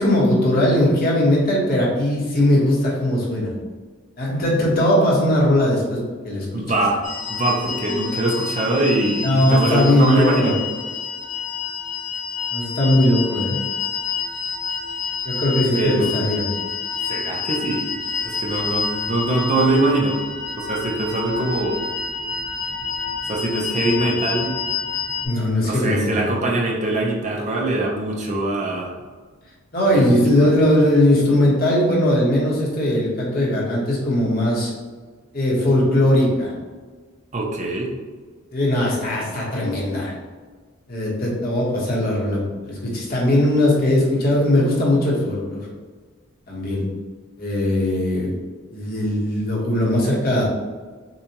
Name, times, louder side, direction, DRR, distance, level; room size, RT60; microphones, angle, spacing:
voice 1, 0.0-3.5 4.2-6.5 7.6-8.0 9.2-10.5 12.5-13.6 15.2-16.5 25.2-26.3 29.7-34.7 35.3-36.5 38.5-40.1 40.9-45.6 46.5-46.8 47.4-48.3 48.7-50.4, left 1 dB, 45° left, -4 dB, 1.3 m, -19 dB
voice 2, 6.5-7.0 7.3-10.6 15.7-16.2 17.0-17.9 18.2-20.2 20.6-21.8 23.3-24.5 25.6-28.9 29.9-30.0 30.4-30.5 37.3-37.9, right 2 dB, 35° right, -1 dB, 0.7 m, -22 dB
sound 1, 7.0-25.3, left 5 dB, 75° left, 1.3 m, -28 dB
6.7 x 2.5 x 2.9 m, 1.4 s
head